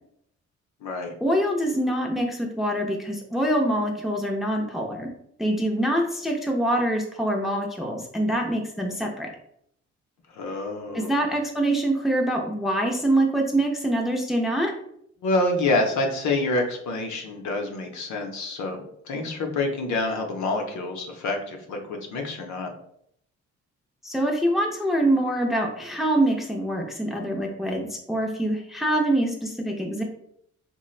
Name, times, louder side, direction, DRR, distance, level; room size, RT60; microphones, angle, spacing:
voice 1, 1.2-5.1 5.4-9.3 10.9-14.7 24.0-30.0, right 1 dB, ahead, 1 dB, 0.4 m, -25 dB
voice 2, 10.3-11.1 15.2-22.7, left 2 dB, 70° left, 3 dB, 0.7 m, -27 dB
3.1 x 2.1 x 2.3 m, 0.70 s
cardioid pair, 90°, 30 cm